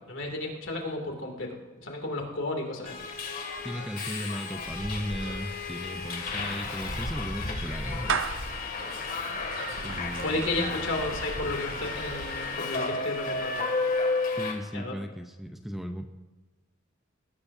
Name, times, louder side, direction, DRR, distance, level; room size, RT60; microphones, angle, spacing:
voice 1, 0.1-1.6 1.8-3.0 10.2-13.6 14.7-14.9, left 2 dB, 70° left, 1 dB, 2.7 m, -32 dB
Subway metro underground, 2.8-14.5, left 3 dB, 45° left, 2.3 m, -33 dB
voice 2, 3.6-8.4 9.8-10.8 14.4-16.1, equal, ahead, 5 dB, 0.7 m, -36 dB
Clapping / Meow, 6.5-12.6, right 5 dB, 70° right, 0.7 m, -38 dB
20.5 x 17.0 x 2.8 m, 1.3 s
head